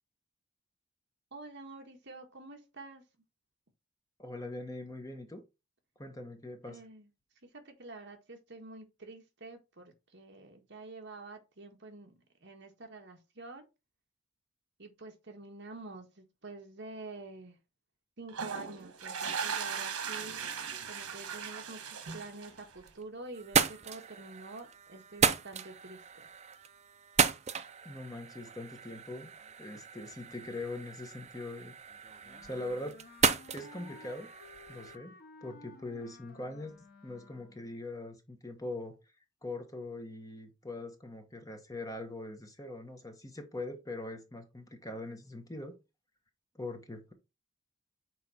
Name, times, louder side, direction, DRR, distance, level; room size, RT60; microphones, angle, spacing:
voice 1, 1.3-3.0 6.6-7.1 7.5-12.1 12.4-13.6 14.8-17.6 18.2-20.4 20.8-26.3, right 3 dB, 55° right, 1.5 m, -47 dB
voice 2, 4.2-5.4 6.0-6.8 27.8-29.3 29.6-31.7 32.2-33.0 33.5-34.3 34.7-36.7 37.0-39.0 39.4-45.8 46.5-47.1, left 2 dB, 15° left, 1.0 m, -42 dB
sound 1, 18.3-22.8, right 6 dB, 90° right, 1.3 m, -38 dB
sound 2, 22.5-23.0 23.3-35.0, right 6 dB, 30° right, 0.4 m, -34 dB
Wind instrument woodwind instrument, 32.2-37.8, left 3 dB, 45° left, 1.0 m, -55 dB
6.3 x 4.2 x 4.2 m
head